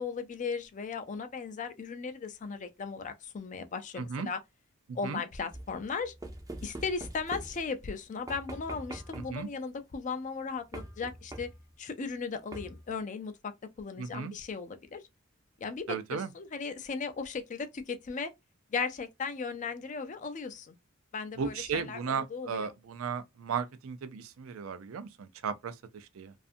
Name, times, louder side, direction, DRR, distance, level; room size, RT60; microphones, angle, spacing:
voice 1, 0.0-4.4 4.9-6.1 6.6-11.5 11.8-13.5 13.8-15.0 15.6-18.3 18.7-20.8 21.1-22.7, left 5 dB, 40° left, 0.4 m, -37 dB
voice 2, 4.0-4.3 4.9-5.2 9.1-9.5 14.0-14.3 15.9-16.3 21.4-26.3, right 6 dB, 85° right, 0.4 m, -35 dB
sound 1, 5.5-7.9 8.3-9.5 10.7-11.7 12.5-13.0, right 1 dB, 15° right, 0.5 m, -44 dB
2.5 x 2.4 x 2.5 m
head